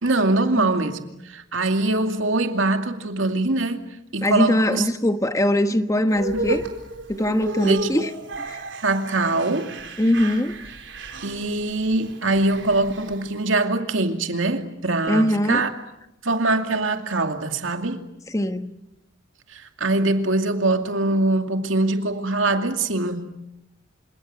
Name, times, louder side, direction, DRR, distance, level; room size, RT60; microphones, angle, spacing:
voice 1, 0.0-1.0 1.2-3.8 4.1-4.9 7.6-7.9 8.8-9.7 11.2-15.7 16.2-18.0 19.5-23.3, right 2 dB, 90° right, 2.5 m, -23 dB
voice 2, 4.2-6.6 7.1-8.1 8.4-8.6 10.0-10.6 15.1-15.6 18.3-18.7, left 1 dB, 15° left, 1.2 m, -21 dB
sound 1, 6.1-13.5, right 1 dB, 70° right, 4.1 m, -33 dB
28.0 x 27.0 x 7.7 m
head